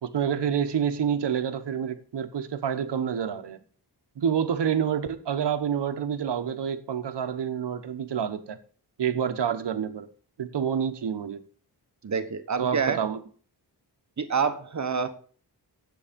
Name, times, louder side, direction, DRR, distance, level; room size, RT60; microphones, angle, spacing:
voice 1, 0.0-3.6 4.2-8.6 9.0-10.1 10.4-11.4 12.6-13.2, right 8 dB, 85° right, 1.2 m, -28 dB
voice 2, 12.0-13.0 14.2-15.1, right 5 dB, 45° right, 1.1 m, -27 dB
10.0 x 8.3 x 5.2 m
wide cardioid pair, 170°, 41 cm